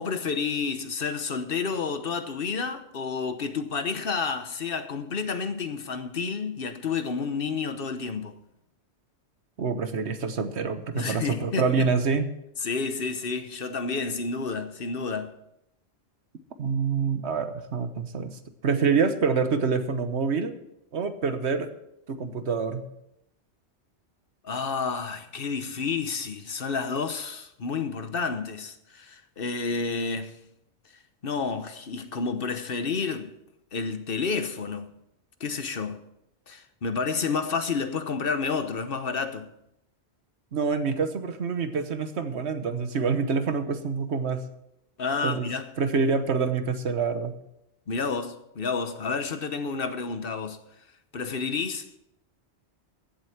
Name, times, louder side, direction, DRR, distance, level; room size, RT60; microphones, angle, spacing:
voice 1, 0.0-8.4 10.9-11.9 12.6-15.3 24.4-30.4 31.2-33.3 33.7-34.9 35.4-36.0 36.5-39.5 45.0-45.7 47.9-50.6 51.1-52.0, left 5 dB, 55° left, 1.2 m, -30 dB
voice 2, 9.6-12.3 16.6-20.6 20.9-21.7 22.1-22.9 40.5-44.5 45.2-45.5 45.8-47.4, right 5 dB, 75° right, 1.4 m, -26 dB
15.5 x 8.0 x 5.8 m
omnidirectional pair, 1.1 m